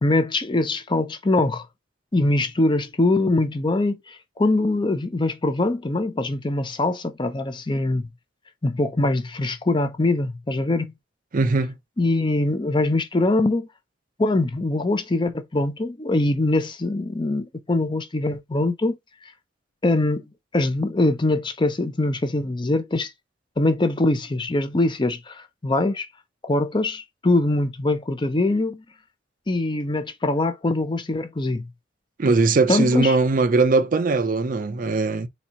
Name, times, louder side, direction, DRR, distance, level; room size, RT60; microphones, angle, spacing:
voice 1, 0.0-1.6 2.1-8.1 8.6-10.9 12.0-13.7 14.2-19.0 19.8-20.2 20.5-23.1 23.6-26.1 26.4-28.8 29.5-31.6 32.7-33.2, left 2 dB, 25° left, 0.5 m, -23 dB
voice 2, 11.3-11.7 32.2-35.3, right 3 dB, 45° right, 0.5 m, -20 dB
4.2 x 2.7 x 4.2 m
head